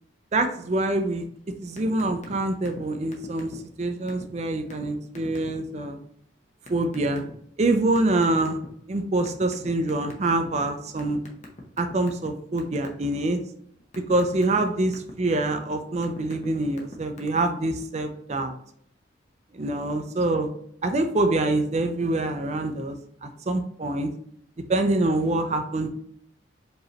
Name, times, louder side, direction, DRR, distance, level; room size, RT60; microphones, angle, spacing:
voice 1, 0.3-1.2 1.6-6.0 6.7-7.3 7.6-8.6 8.9-11.2 11.8-13.4 14.0-18.6 19.6-20.5 20.8-24.1 24.7-25.9, right 2 dB, 35° right, 7 dB, 0.4 m, -25 dB
sound 1, 1.8-2.4 2.6-2.8 3.1-3.7 4.1-4.2 4.7-4.8 5.1-5.5 6.7-7.3 8.0-8.8 9.2-10.5 11.0-12.3 12.6-13.1 13.5-15.1 15.7-16.5 16.7-17.2, left 2 dB, 35° left, 0.7 m, -42 dB
4.8 x 3.1 x 2.8 m, 0.67 s
head